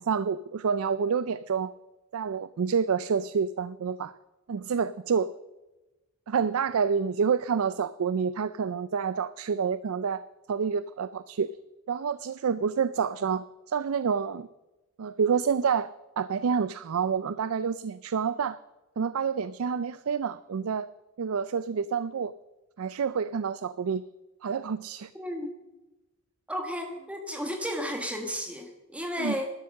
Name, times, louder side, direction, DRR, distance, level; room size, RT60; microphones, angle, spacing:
voice 1, 0.0-1.7 2.1-4.1 4.5-5.3 6.3-10.2 10.5-11.5 11.9-14.5 15.0-18.6 19.0-20.9 21.2-22.3 22.8-24.0 24.4-25.1 29.2-29.4, right 6 dB, 80° right, 16 dB, 0.4 m, -28 dB
voice 2, 25.1-25.5 26.5-29.5, equal, 5° right, 3 dB, 1.3 m, -33 dB
12.0 x 12.0 x 6.4 m, 1.1 s
head